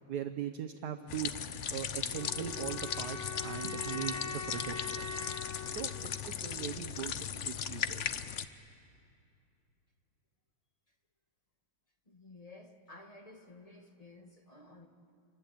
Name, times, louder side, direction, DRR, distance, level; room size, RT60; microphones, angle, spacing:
voice 1, 0.1-1.3 1.7-5.1 5.7-5.9 6.2-8.0, right 9 dB, 60° right, 7 dB, 1.3 m, -40 dB
sound 1, 1.1-8.5, left 8 dB, 80° left, 0.6 m, -38 dB
sound 2, 2.1-7.1, left 4 dB, 35° left, 1.8 m, -43 dB
voice 2, 12.0-14.9, left 2 dB, 20° left, 4 dB, 1.4 m, -54 dB
27.5 x 23.5 x 8.6 m, 2.6 s
omnidirectional pair, 2.3 m